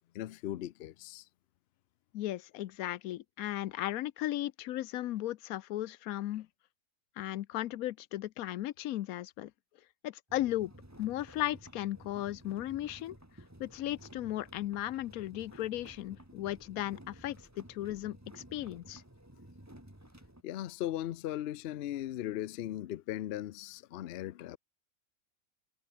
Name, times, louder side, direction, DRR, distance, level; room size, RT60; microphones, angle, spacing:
voice 1, 0.1-1.2 20.4-24.6, left 13 dB, 60° left, 0.7 m, -38 dB
voice 2, 2.1-6.5 7.2-9.5 10.0-10.7 11.0-13.2 13.6-19.0, left 14 dB, 90° left, 1.1 m, -36 dB
sound 1, 10.3-20.4, right 1 dB, 10° right, 3.1 m, -54 dB
omnidirectional pair, 1.5 m